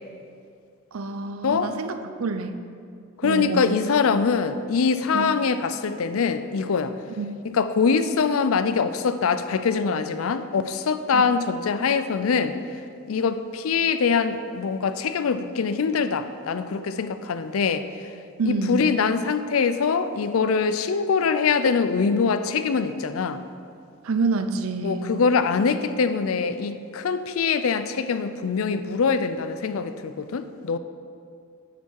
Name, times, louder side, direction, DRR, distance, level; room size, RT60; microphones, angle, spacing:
voice 1, 0.9-2.6 3.2-3.7 5.1-5.2 7.2-7.3 11.1-11.2 18.4-18.9 24.0-25.1, right 4 dB, 85° right, 8 dB, 0.6 m, -27 dB
voice 2, 3.2-6.9 7.5-12.6 13.1-18.1 18.4-23.4 24.8-30.8, left 5 dB, 85° left, 11 dB, 0.5 m, -23 dB
8.2 x 7.4 x 4.6 m, 2.4 s
head